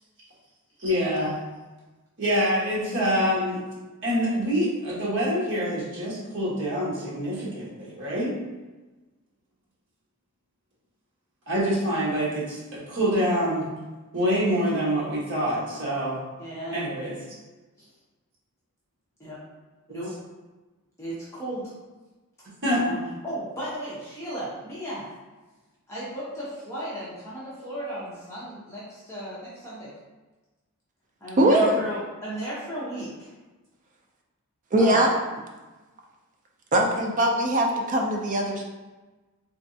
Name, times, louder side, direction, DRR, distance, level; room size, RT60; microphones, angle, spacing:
voice 1, 0.8-1.4 2.2-3.6 4.0-8.3 11.5-13.7 14.1-16.2 16.7-17.1 22.6-22.8, equal, 55° right, -7 dB, 1.2 m, -26 dB
voice 2, 16.4-17.1 17.8-17.9 19.2-19.4 19.9-20.1 21.0-21.7 22.8-25.1 25.9-29.9 31.2-33.3 34.8-35.1, right 1 dB, 10° left, -10 dB, 0.8 m, -35 dB
voice 3, 31.4-31.8 34.7-35.1 36.7-38.6, right 1 dB, 35° right, 1 dB, 0.4 m, -21 dB
3.5 x 3.0 x 2.7 m, 1.2 s
head